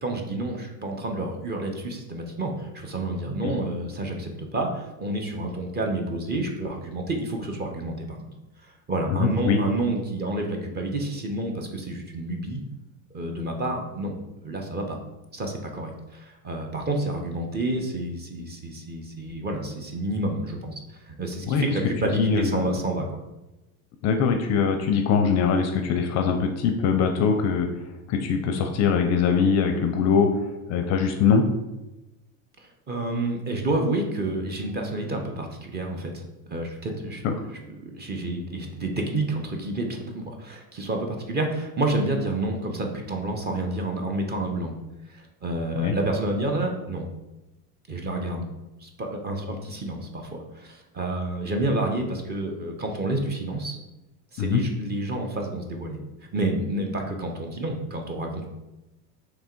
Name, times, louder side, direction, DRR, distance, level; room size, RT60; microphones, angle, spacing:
voice 1, 0.0-8.3 8.6-12.6 13.1-14.2 14.4-15.0 15.3-23.2 32.6-36.2 36.5-37.2 37.8-44.7 45.1-47.1 47.9-48.5 48.8-53.8 54.3-56.0 56.3-58.4, right 2 dB, 25° right, 3 dB, 0.6 m, -29 dB
voice 2, 9.1-9.6 21.5-21.6 22.0-22.8 24.0-27.7 28.1-30.3 30.7-31.4 37.2-37.3 45.8-45.9 54.4-54.6, left 6 dB, 40° left, 5 dB, 0.4 m, -22 dB
3.5 x 2.9 x 4.4 m, 0.99 s
supercardioid pair, 115°, 42 cm